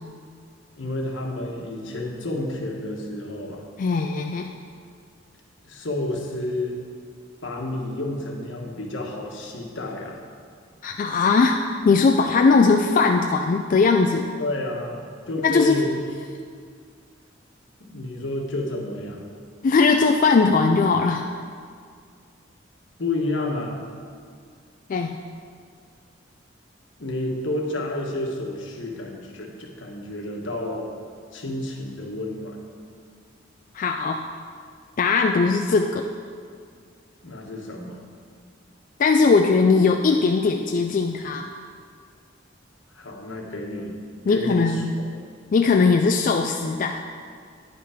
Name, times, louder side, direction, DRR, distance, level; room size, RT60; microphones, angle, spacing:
voice 1, 0.8-3.6 5.7-6.7 7.4-10.2 14.4-15.0 15.3-15.9 17.8-19.2 23.0-23.8 27.0-30.9 31.3-32.6 37.2-38.0 42.9-43.9 44.3-44.8, left 2 dB, 80° left, 0 dB, 1.3 m, -30 dB
voice 2, 3.8-4.5 10.8-14.3 15.4-15.8 19.6-21.2 24.9-25.2 33.7-34.2 35.0-36.0 39.0-41.5 44.3-44.9 45.5-47.0, left 4 dB, 45° left, 4 dB, 0.3 m, -19 dB
9.7 x 5.6 x 5.0 m, 2.1 s
head